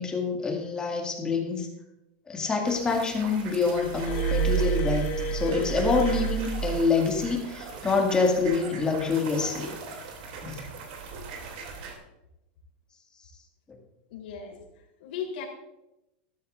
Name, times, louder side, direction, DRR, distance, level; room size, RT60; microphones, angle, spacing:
voice 1, 0.0-1.7 2.3-9.7 10.4-10.6, left 4 dB, 15° left, 1 dB, 2.1 m, -26 dB
sound 1, 2.6-12.0, right 4 dB, 65° right, 2.9 m, -41 dB
Glass, 3.8-7.4 8.4-8.6, right 6 dB, 50° left, 2.7 m, -29 dB
voice 2, 14.1-14.6 15.0-15.4, left 7 dB, 75° left, -2 dB, 3.8 m, -36 dB
15.0 x 12.5 x 2.6 m, 0.91 s
supercardioid pair, 145°, 5 cm